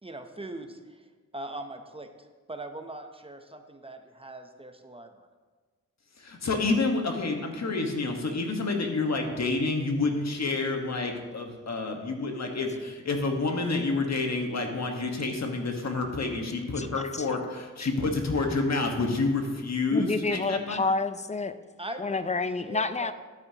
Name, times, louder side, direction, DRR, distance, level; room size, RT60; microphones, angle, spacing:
voice 1, 0.0-5.3 21.8-23.1, right 2 dB, 20° right, 6 dB, 0.7 m, -41 dB
voice 2, 6.2-20.8, left 3 dB, 60° left, 3 dB, 1.4 m, -28 dB
voice 3, 19.9-21.5 22.0-23.1, left 3 dB, 25° left, 11 dB, 0.4 m, -28 dB
13.0 x 9.7 x 2.9 m, 1.4 s
wide cardioid pair, 125°, 30 cm